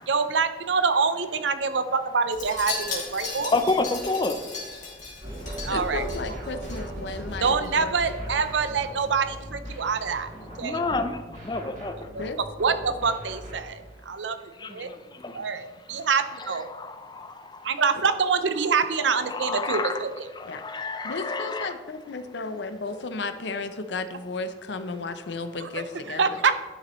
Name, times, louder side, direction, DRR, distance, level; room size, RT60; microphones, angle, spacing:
voice 1, 0.1-3.5 5.6-6.3 7.4-10.3 10.6-10.8 12.6-14.3 14.7-14.9 15.3-16.7 17.6-20.1 25.6-25.7 26.2-26.6, right 5 dB, 85° right, 10 dB, 0.6 m, -25 dB
Wind chime, 2.3-6.8 7.1-7.4 7.6-7.7, left 4 dB, 45° left, 2.6 m, -36 dB
voice 2, 3.5-4.4 6.5-6.6 10.4-11.9 14.6-14.9 15.2-15.4 16.3-17.6 19.1-20.0 20.3-21.8, left 3 dB, 25° left, 8 dB, 0.6 m, -29 dB
sound 1, 5.2-13.8, right 1 dB, 45° right, 2.4 m, -39 dB
voice 3, 5.7-8.0 12.2-12.4 20.4-20.6 21.0-26.4, left 3 dB, 75° left, 10 dB, 0.6 m, -34 dB
11.0 x 6.8 x 3.1 m, 1.4 s
head